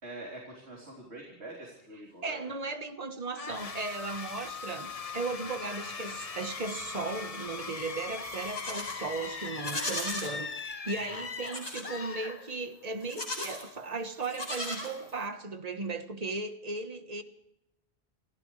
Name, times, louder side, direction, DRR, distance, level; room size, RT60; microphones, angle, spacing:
voice 1, 0.0-2.5 11.1-11.2, right 2 dB, 90° right, 4.0 m, -45 dB
voice 2, 2.2-17.2, right 3 dB, 35° right, 1.4 m, -36 dB
sound 1, 3.3-12.9, left 4 dB, 35° left, 0.9 m, -40 dB
Livestock farm animals working animals, 8.2-9.0 9.5-10.3 11.4-11.9 13.0-13.7 14.2-15.3, left 1 dB, 80° left, 4.7 m, -37 dB
29.5 x 15.0 x 3.3 m
omnidirectional pair, 1.1 m